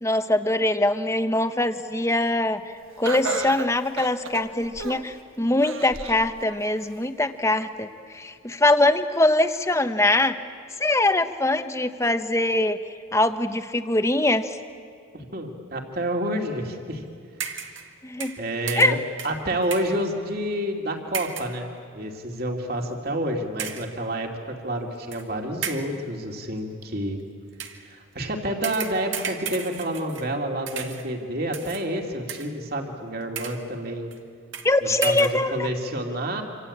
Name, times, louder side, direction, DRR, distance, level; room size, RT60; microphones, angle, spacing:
voice 1, 0.0-10.4 10.8-12.8 13.1-14.6 18.0-18.4 18.8-19.0 34.6-35.7, left 2 dB, 15° left, 9 dB, 1.0 m, -23 dB
Laughter, 3.0-5.2 5.6-6.3 6.8-6.9 7.8-7.9, right 3 dB, 85° right, 1.5 m, -32 dB
voice 2, 15.1-17.0 18.4-19.0 19.2-27.2 27.8-34.1 34.8-36.4, right 1 dB, 50° right, 2 dB, 2.7 m, -29 dB
sound 1, 17.4-17.9 18.2-20.0 21.1-21.6 22.3-22.5 23.6-24.0 25.1-25.2 25.6-26.0 27.5-27.9 28.6-30.4 30.7-31.1 31.5-31.9 32.3-32.7 33.2-33.7 34.1-34.2 34.5-34.7 35.0-35.4, right 7 dB, 70° right, 1.9 m, -35 dB
27.0 x 25.5 x 8.7 m, 2.3 s
head